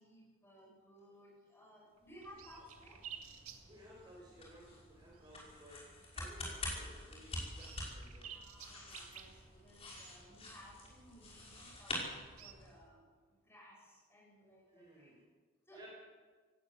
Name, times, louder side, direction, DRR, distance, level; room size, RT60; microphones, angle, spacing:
voice 1, 0.0-3.0 8.3-12.1 12.4-15.2 15.7-15.9, equal, 10° left, -3 dB, 7.4 m, -59 dB
sound 1, 1.7-1.8 2.0-4.2 4.6-4.7 5.1-5.7 6.0-6.2 6.6-6.7 7.2-10.8 11.5-12.5, right 9 dB, 85° right, 2.0 m, -54 dB
sound 2, 2.0-12.8, left 1 dB, 25° left, 5.4 m, -47 dB
voice 2, 3.6-5.8 6.1-8.3 14.7-15.2 15.7-15.9, equal, 20° right, -3 dB, 4.7 m, -58 dB
18.0 x 18.0 x 8.2 m, 1.5 s
head